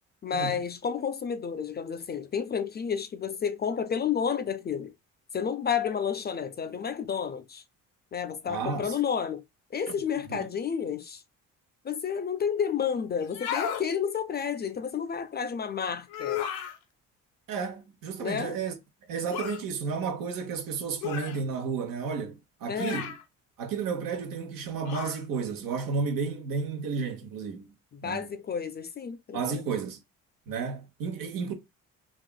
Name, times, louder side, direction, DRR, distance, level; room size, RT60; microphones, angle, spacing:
voice 1, 0.2-4.9 5.3-7.6 8.1-9.4 9.7-11.2 11.8-16.4 18.2-18.6 22.7-23.0 27.9-29.7, left 7 dB, 30° left, 0.4 m, -31 dB
voice 2, 8.5-8.9 10.3-10.5 17.5-18.7 19.1-23.2 23.6-27.7 28.0-28.3 29.3-30.0 30.5-31.5, right 5 dB, 75° right, 0.9 m, -32 dB
sound 1, 13.2-13.9 16.1-16.8 19.3-19.6 21.0-21.4 22.8-23.2 24.9-25.2, left 9 dB, 90° left, 0.6 m, -33 dB
3.3 x 2.4 x 2.2 m
supercardioid pair, 65°, 35 cm